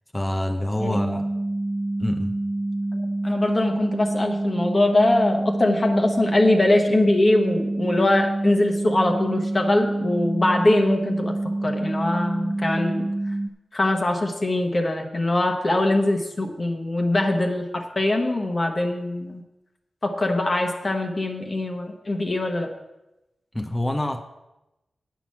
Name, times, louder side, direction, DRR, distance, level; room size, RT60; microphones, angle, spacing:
voice 1, 0.1-1.3 2.0-2.4 23.5-24.2, left 1 dB, 10° left, 0.7 m, -26 dB
sound 1, 0.8-13.5, right 2 dB, 30° right, 0.6 m, -27 dB
voice 2, 2.9-13.1 13.7-19.4 20.0-22.7, left 2 dB, 35° left, 1.1 m, -22 dB
9.3 x 5.9 x 7.4 m
wide cardioid pair, 135°, 0 cm